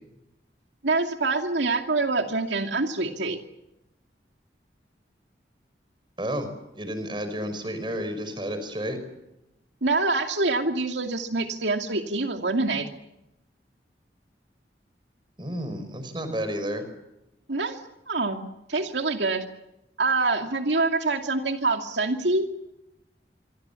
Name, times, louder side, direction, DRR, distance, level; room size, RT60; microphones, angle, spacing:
voice 1, 0.8-3.4 9.8-12.9 17.5-17.8 18.1-18.4 18.7-19.4 20.0-22.5, right 3 dB, 85° right, 5 dB, 2.5 m, -25 dB
voice 2, 6.2-6.5 6.8-9.0 15.4-16.8, equal, 25° right, 9 dB, 5.3 m, -31 dB
26.5 x 25.0 x 7.1 m, 0.90 s
head